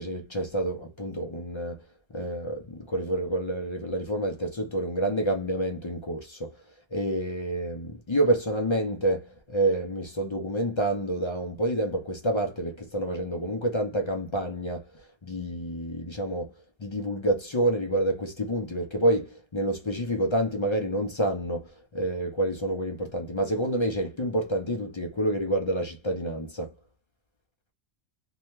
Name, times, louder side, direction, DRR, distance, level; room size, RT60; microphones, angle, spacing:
voice 1, 0.0-1.8 2.1-6.5 6.9-14.8 15.2-16.5 16.8-21.7 21.9-26.7, right 1 dB, 45° left, 0.3 m, -28 dB
2.7 x 2.2 x 2.9 m
omnidirectional pair, 1.3 m